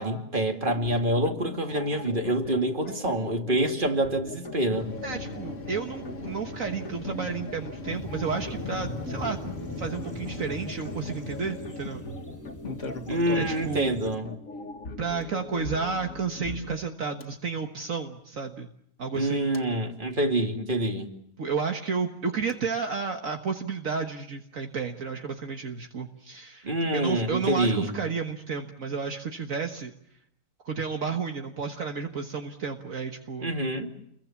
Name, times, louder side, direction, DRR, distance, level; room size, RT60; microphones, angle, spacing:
voice 1, 0.0-4.9 13.1-14.3 19.1-21.2 26.6-28.0 33.4-33.9, right 1 dB, 35° right, 2.7 m, -26 dB
sound 1, 0.7-16.8, left 3 dB, 65° left, 1.9 m, -40 dB
sound 2, 4.7-11.8 12.5-13.8 15.2-15.3 17.2-17.3 19.1-19.6 22.5-22.6, left 2 dB, 45° left, 1.9 m, -40 dB
voice 2, 5.0-9.4 9.8-12.0 13.4-13.9 15.0-18.7 19.0-19.5 21.4-26.7 26.9-29.9 30.6-33.5, right 5 dB, 65° right, 1.8 m, -32 dB
sound 3, 7.9-14.2, left 2 dB, 10° left, 2.9 m, -41 dB
29.5 x 22.5 x 7.2 m
omnidirectional pair, 1.5 m